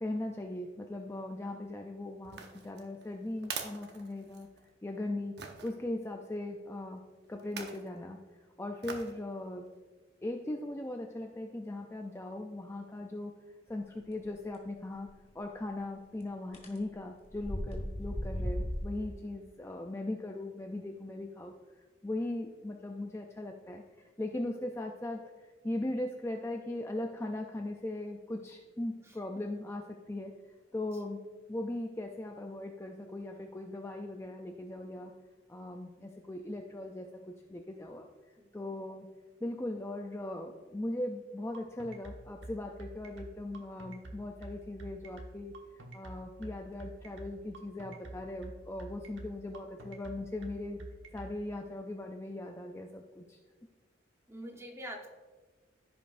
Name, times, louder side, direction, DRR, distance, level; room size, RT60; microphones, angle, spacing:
voice 1, 0.0-4.5 4.8-5.3 5.6-7.0 7.3-8.2 8.6-9.7 10.2-13.3 13.7-15.1 15.3-21.5 22.0-31.2 31.5-35.1 35.5-38.1 38.5-39.1 39.4-50.8 51.1-53.4, left 1 dB, 15° left, 2 dB, 0.4 m, -39 dB
sound 1, 2.2-4.7 5.4-5.7 7.4-7.9 8.8-9.2 9.7-9.8, right 5 dB, 60° right, 0.8 m, -43 dB
sound 2, 15.1-15.2 16.5-16.8 17.3-18.8, equal, 35° left, 1.7 m, -35 dB
voice 2, 29.0-29.4 38.4-38.8 54.3-55.1, equal, 15° right, 1 dB, 1.0 m, -46 dB
sound 3, 41.5-51.3, right 1 dB, 90° right, 1.1 m, -46 dB
15.0 x 5.2 x 2.6 m, 1.3 s
head